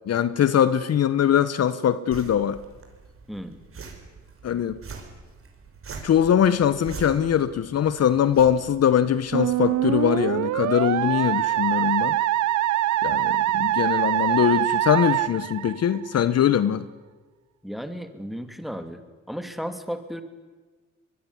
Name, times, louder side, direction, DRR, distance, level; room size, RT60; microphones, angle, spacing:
voice 1, 0.1-2.6 4.4-4.8 6.0-12.2 13.0-16.9, left 9 dB, 55° left, 1.1 m, -22 dB
sound 1, 2.1-10.1, right 4 dB, 45° right, 5.7 m, -44 dB
Musical instrument, 9.3-16.2, right 14 dB, 70° right, 0.7 m, -24 dB
voice 2, 17.6-19.0 19.3-20.2, equal, ahead, 3.0 m, -34 dB
23.5 x 21.5 x 9.9 m
cardioid pair, 90°, 30 cm